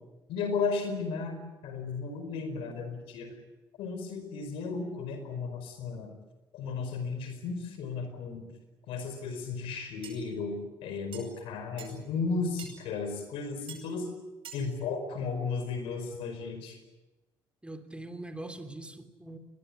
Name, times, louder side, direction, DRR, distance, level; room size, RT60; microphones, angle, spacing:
voice 1, 0.3-1.4 1.6-3.4 3.8-6.1 6.5-8.5 8.9-14.1 14.5-16.8, left 4 dB, 90° left, 8 dB, 4.8 m, -34 dB
sound 1, 10.0-10.2 11.1-11.2 11.8-11.9 12.6-12.7 13.7-13.8 14.4-14.6, right 8 dB, 75° right, 5.6 m, -44 dB
voice 2, 17.6-19.4, right 2 dB, 10° right, 7 dB, 3.1 m, -42 dB
22.0 x 20.0 x 10.0 m, 1.1 s
supercardioid pair, 70°, 9 cm